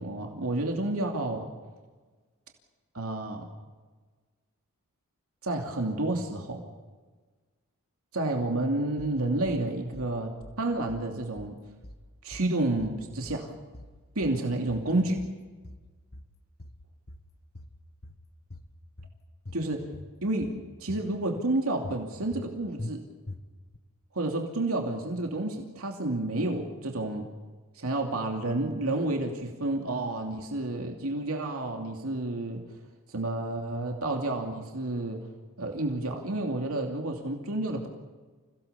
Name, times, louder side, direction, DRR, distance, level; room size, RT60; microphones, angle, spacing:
voice 1, 0.0-1.5 2.9-3.5 5.4-6.6 8.1-11.6 12.2-13.5 14.1-15.2 19.5-19.9 20.2-23.0 24.1-27.2 27.8-32.6 33.1-35.2 35.6-37.9, right 2 dB, 80° right, 2 dB, 2.7 m, -30 dB
sound 1, 9.0-9.6 9.9-10.6 10.9-11.6 11.8-12.5 12.8-13.5 13.7-14.4 14.7-15.4 15.6-16.3 16.6-17.3 17.5-18.2 18.5-19.2 19.5-20.1 20.4-21.1 21.3-21.5 21.8-22.5 22.8-22.9 23.3-23.8, left 2 dB, 45° left, 1.5 m, -44 dB
28.0 x 17.0 x 6.9 m, 1.4 s
head